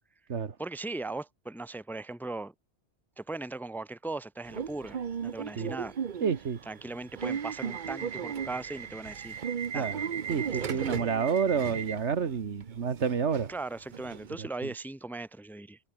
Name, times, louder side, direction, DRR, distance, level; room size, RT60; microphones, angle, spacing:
voice 1, 0.6-2.5 3.2-5.0 5.2-6.0 6.7-9.4 9.7-9.9 10.5-10.9 13.5-15.8, right 2 dB, ahead, 0.9 m, -38 dB
Subway metro underground / Alarm, 4.5-14.3, right 7 dB, 50° right, 0.9 m, -36 dB
voice 2, 6.2-6.6 9.7-13.5 14.4-14.5, right 6 dB, 80° right, 1.7 m, -29 dB
omnidirectional pair, 1.2 m